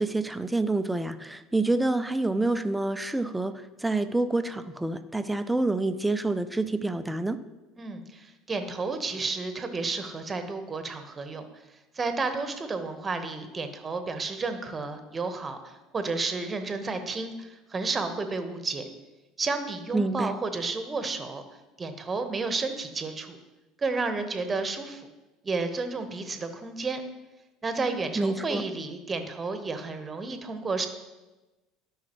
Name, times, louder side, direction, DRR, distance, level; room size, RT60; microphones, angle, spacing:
voice 1, 0.0-3.5 3.8-7.4 19.9-20.3 28.2-28.6, right 2 dB, 10° right, 11 dB, 0.6 m, -27 dB
voice 2, 7.8-11.5 11.9-18.9 19.4-21.4 21.8-23.4 23.8-25.1 25.4-27.0 27.6-30.9, right 3 dB, 25° right, 7 dB, 1.1 m, -31 dB
12.5 x 5.6 x 3.1 m, 1.1 s
hypercardioid pair, 70°, 0 cm